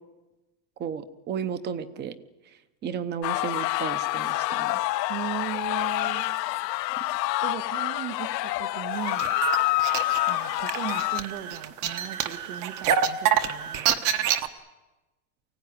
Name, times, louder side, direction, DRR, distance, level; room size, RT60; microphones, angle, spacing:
voice 1, 0.8-2.1 2.8-4.8, right 7 dB, 20° right, 14 dB, 0.8 m, -33 dB
sound 1, 3.2-11.2, left 18 dB, 90° left, 1.1 m, -27 dB
voice 2, 5.1-6.3 7.4-9.3 10.3-14.3, right 12 dB, 70° right, 10 dB, 1.8 m, -37 dB
sound 2, 9.0-14.5, right 9 dB, 40° right, 1.2 m, -27 dB
24.5 x 16.5 x 9.8 m, 1.1 s
supercardioid pair, 165°, 49 cm